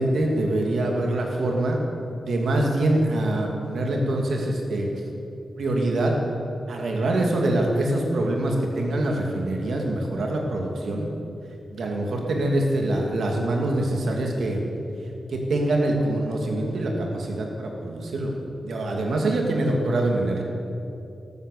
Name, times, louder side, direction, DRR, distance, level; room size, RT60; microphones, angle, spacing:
voice 1, 0.0-1.8 2.1-4.9 5.6-6.2 6.7-11.1 11.7-14.6 15.3-18.3 18.6-20.4, right 1 dB, 80° right, 1 dB, 2.6 m, -24 dB
13.5 x 13.5 x 6.9 m, 2.8 s
wide cardioid pair, 100°, 0 cm